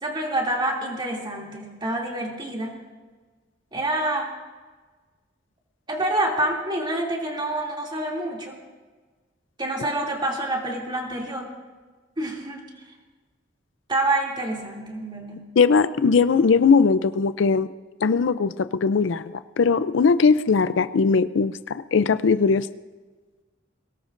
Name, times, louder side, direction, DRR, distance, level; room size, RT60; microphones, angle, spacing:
voice 1, 0.0-2.8 3.7-4.3 5.9-8.6 9.6-11.5 12.2-12.7 13.9-15.5, right 1 dB, 25° right, -2 dB, 2.6 m, -27 dB
voice 2, 15.6-17.7 18.0-22.7, left 5 dB, 70° left, 13 dB, 0.4 m, -20 dB
22.5 x 18.5 x 2.6 m, 1.4 s
head